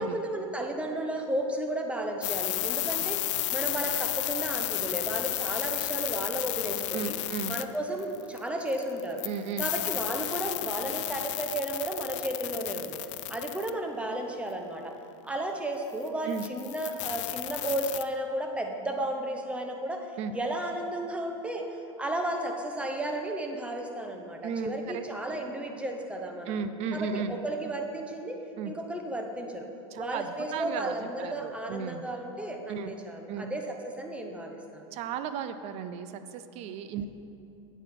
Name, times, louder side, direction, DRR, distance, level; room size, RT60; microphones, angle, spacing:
voice 1, 0.0-3.2 3.5-7.2 7.5-9.2 9.6-13.0 13.3-14.9 15.2-21.6 22.0-26.6 26.9-28.4 28.6-29.7 29.9-34.8, right 1 dB, 5° right, 3 dB, 0.9 m, -33 dB
sound 1, 2.2-8.4 8.7-13.7 16.1-16.2 16.3-18.0, left 15 dB, 75° left, 0.4 m, -32 dB
voice 2, 6.9-7.6 9.2-9.7 16.2-16.4 20.2-20.3 24.4-25.4 26.5-27.3 28.6-28.7 29.9-32.0 32.7-32.9 33.3-33.5 34.9-37.1, right 7 dB, 45° right, 11 dB, 0.5 m, -35 dB
8.7 x 7.9 x 4.4 m, 2.9 s
hypercardioid pair, 115°, 16 cm